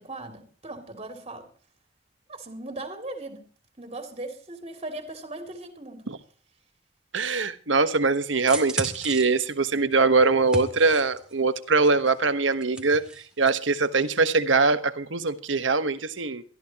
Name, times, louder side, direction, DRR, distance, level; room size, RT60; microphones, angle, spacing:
voice 1, 0.0-1.5 2.3-3.4 3.8-6.1, right 2 dB, 30° right, 2.7 m, -38 dB
voice 2, 7.1-13.1 13.4-16.4, right 3 dB, 80° right, 1.3 m, -22 dB
sound 1, 8.5-11.3 11.8-13.6 13.8-14.0, right 2 dB, 5° right, 2.2 m, -35 dB
23.0 x 14.0 x 3.0 m
head